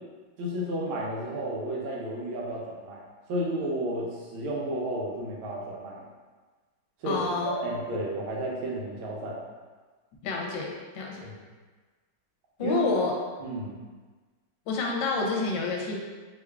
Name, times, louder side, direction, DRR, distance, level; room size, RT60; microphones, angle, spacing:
voice 1, 0.4-3.0 3.3-6.1 7.0-9.4 11.2-11.3 12.6-13.0 13.4-13.8, right 1 dB, 85° right, -3 dB, 1.6 m, -32 dB
voice 2, 7.0-7.5 10.2-11.3 12.6-13.1 14.7-16.0, left 4 dB, 75° left, -1 dB, 1.3 m, -28 dB
3.6 x 2.3 x 3.3 m, 1.4 s
omnidirectional pair, 2.2 m